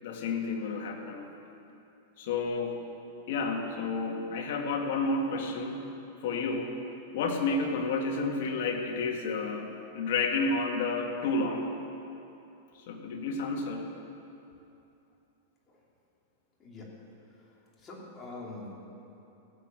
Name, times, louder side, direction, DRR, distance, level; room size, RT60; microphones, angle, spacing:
voice 1, 0.0-1.3 2.2-2.8 3.3-5.8 6.2-6.7 7.1-9.7 9.9-11.7 12.9-13.8, left 3 dB, 65° left, 2 dB, 2.0 m, -30 dB
voice 2, 17.8-18.9, left 2 dB, 20° left, -3 dB, 3.1 m, -44 dB
15.5 x 8.3 x 7.6 m, 2.9 s
hypercardioid pair, 135°, 0 cm